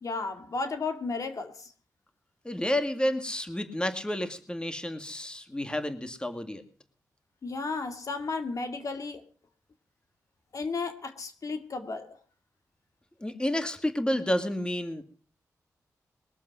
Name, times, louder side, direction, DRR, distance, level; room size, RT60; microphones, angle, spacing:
voice 1, 0.0-1.7 7.4-9.2 10.5-12.2, left 4 dB, 60° left, 2.1 m, -34 dB
voice 2, 2.4-6.6 13.2-15.0, left 1 dB, 15° left, 2.0 m, -30 dB
22.0 x 7.3 x 5.8 m
cardioid pair, 70°, 6 cm